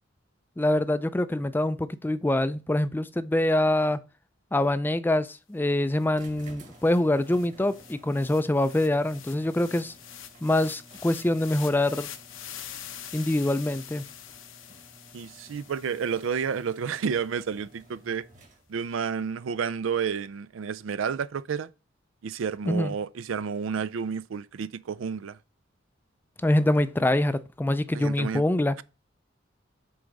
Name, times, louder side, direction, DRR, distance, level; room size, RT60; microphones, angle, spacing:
voice 1, 0.6-4.0 4.5-9.9 10.4-12.1 13.1-14.0 22.7-22.9 26.4-28.8, left 1 dB, 10° left, 0.4 m, -25 dB
sound 1, 6.0-6.1 6.4-16.7, left 10 dB, 80° left, 0.9 m, -45 dB
sound 2, 6.1-18.9, right 1 dB, 40° right, 1.6 m, -54 dB
voice 2, 15.1-18.2 18.7-21.7 22.2-25.4 27.9-28.4, right 6 dB, 80° right, 0.4 m, -30 dB
7.9 x 3.8 x 5.2 m
head